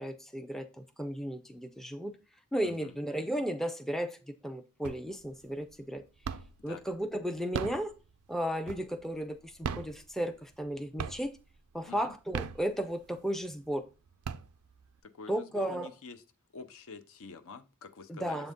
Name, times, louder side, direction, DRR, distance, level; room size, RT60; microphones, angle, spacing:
voice 1, 0.0-2.2 2.5-4.2 4.4-6.0 6.6-7.9 8.3-11.3 11.7-13.8 15.3-15.9 18.1-18.5, equal, ahead, 0.4 m, -34 dB
voice 2, 2.6-3.0 6.7-6.8 11.9-12.1 15.0-16.2 16.5-18.5, left 4 dB, 65° left, 0.6 m, -47 dB
sound 1, 4.8-5.3 5.7-6.7 7.3-9.1 9.5-10.7 11.0-11.5 12.1-13.2 13.7-13.8 14.1-15.0, right 6 dB, 75° right, 0.4 m, -38 dB
7.3 x 3.9 x 3.6 m
head